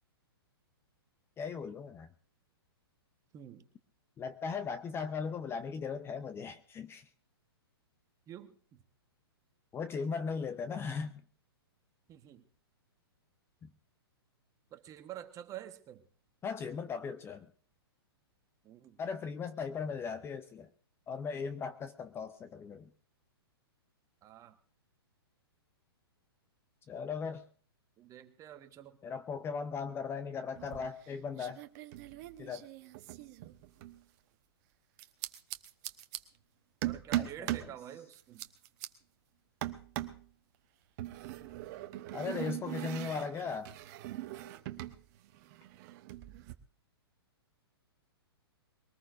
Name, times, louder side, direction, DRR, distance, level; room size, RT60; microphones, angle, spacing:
voice 1, 1.4-2.1 4.2-7.1 9.7-11.2 13.6-13.7 16.4-17.5 19.0-20.7 21.1-22.9 26.9-27.4 29.0-31.6 32.4-32.7 37.1-37.5 42.1-43.7, left 5 dB, 20° left, 10 dB, 0.7 m, -38 dB
voice 2, 3.3-3.7 8.3-8.8 12.1-12.5 14.7-16.0 18.6-19.0 24.2-24.6 28.0-29.0 36.8-38.5, right 11 dB, 25° right, 8 dB, 1.3 m, -48 dB
sound 1, 30.6-31.1 31.4-34.0 35.0-36.2 36.8-37.7 38.1-38.9 39.6-40.2 41.0-45.0 45.2-46.5, right 15 dB, 45° right, 1.1 m, -40 dB
22.5 x 19.0 x 2.6 m, 0.43 s
hypercardioid pair, 120°, 13 cm